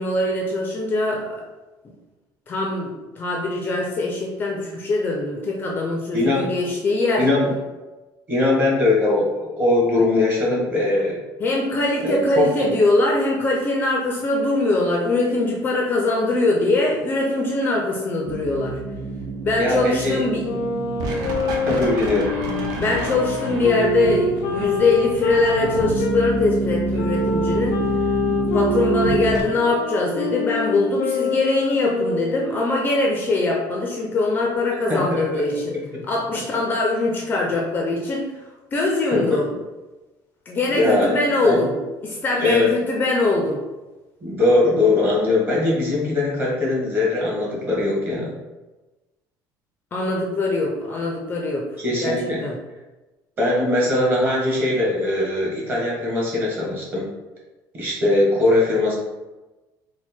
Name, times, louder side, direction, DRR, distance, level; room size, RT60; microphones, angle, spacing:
voice 1, 0.0-1.4 2.5-7.2 11.4-18.8 19.4-20.5 22.8-27.8 28.3-35.8 36.0-38.3 38.7-39.5 40.5-41.7 42.0-43.6 49.9-51.7 52.0-52.5, left 2 dB, 25° left, 0 dB, 0.4 m, -22 dB
voice 2, 6.1-6.5 7.2-7.5 8.3-11.2 12.0-12.5 19.6-20.2 21.6-22.3 34.9-35.4 35.7-35.8 39.1-39.4 40.7-41.1 41.4-41.7 42.4-42.7 44.2-48.3 51.8-52.4 53.4-57.1 57.7-58.9, left 2 dB, 25° right, -4 dB, 1.2 m, -20 dB
sound 1, 18.3-29.4, right 2 dB, 60° right, 0.7 m, -28 dB
sound 2, 20.4-26.2 26.9-32.6, left 3 dB, 90° left, 0.6 m, -26 dB
4.5 x 2.1 x 4.2 m, 1.1 s
cardioid pair, 180°, 8 cm